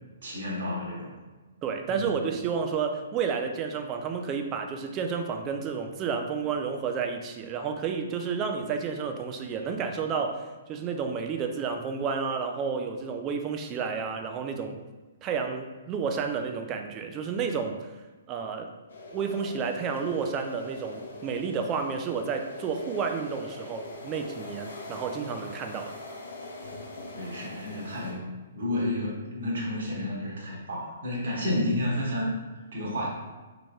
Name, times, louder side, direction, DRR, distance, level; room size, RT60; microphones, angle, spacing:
voice 1, 0.2-1.2 1.9-2.2 27.1-28.3 28.5-33.1, left 1 dB, 60° right, -4 dB, 1.2 m, -31 dB
voice 2, 1.6-14.8 15.2-17.9 18.3-18.7 19.1-25.9, right 6 dB, 25° right, 5 dB, 0.4 m, -31 dB
sound 1, 18.9-28.1, left 2 dB, 65° left, 0.9 m, -42 dB
4.9 x 3.1 x 2.3 m, 1.2 s
figure-of-eight pair, 125°, 0 cm